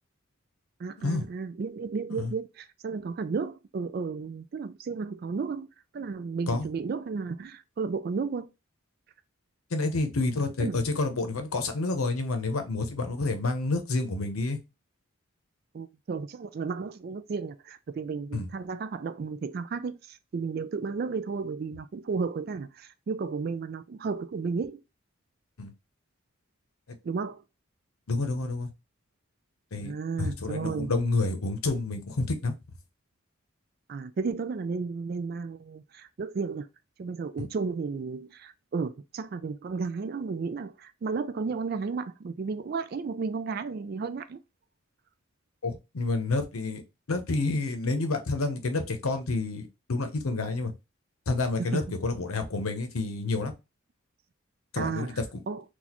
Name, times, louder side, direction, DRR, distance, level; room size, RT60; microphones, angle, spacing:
voice 1, 0.8-5.7 5.9-8.5 10.6-10.8 15.7-24.8 27.0-27.4 29.8-30.9 33.9-36.7 37.0-44.4 51.6-51.8 54.8-55.2 55.5-55.6, right 5 dB, 45° right, 0.3 m, -33 dB
voice 2, 9.7-14.6 18.3-18.5 25.6-25.7 28.1-28.7 29.7-29.9 30.2-32.5 37.4-37.5 45.6-46.8 47.1-50.7 51.3-53.5 54.7-55.4, left 3 dB, 85° left, 0.7 m, -29 dB
4.0 x 2.4 x 2.9 m
head